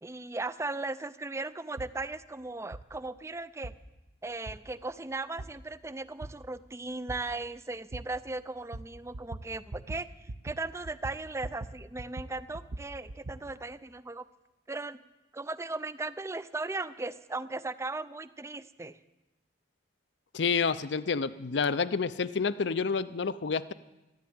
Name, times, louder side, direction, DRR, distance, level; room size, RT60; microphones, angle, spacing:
voice 1, 0.0-3.7 4.2-10.1 10.4-14.3 14.7-15.0 15.3-19.0, right 2 dB, 15° right, 15 dB, 0.4 m, -37 dB
sound 1, 1.8-1.9 2.7-2.8 3.6-3.7 4.5-4.6 5.4-5.5 6.2-6.3 7.1-7.2 7.9-8.0 8.7-8.9 9.1-9.4 9.7-10.0 10.3-10.6 10.8-11.7 12.0-13.4, right 2 dB, 50° right, 0.7 m, -40 dB
voice 2, 20.3-23.7, left 5 dB, 65° left, 16 dB, 0.6 m, -29 dB
13.0 x 11.5 x 8.6 m, 1.0 s
head